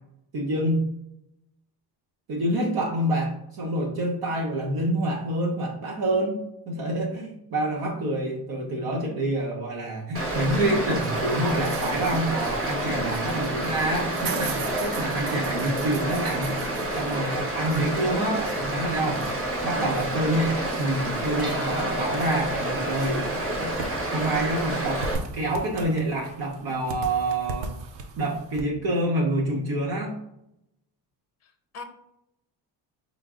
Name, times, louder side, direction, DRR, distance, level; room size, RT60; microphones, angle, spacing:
voice 1, 0.3-0.8 2.3-16.5 16.9-19.3 19.6-23.3 23.5-23.8 24.1-25.1 25.3-27.7 28.2-30.2, right 1 dB, 55° right, -2 dB, 0.9 m, -27 dB
Stream, 10.1-25.1, right 1 dB, 30° right, 1.1 m, -29 dB
sound 1, 10.4-28.6, right 4 dB, 75° right, 0.7 m, -41 dB
voice 2, 19.6-20.2 31.4-31.8, left 4 dB, 35° left, 6 dB, 0.6 m, -39 dB
sound 2, 21.4-26.1, left 2 dB, 10° right, 0.8 m, -38 dB
3.8 x 2.0 x 3.6 m, 0.80 s
cardioid pair, 95°, 45 cm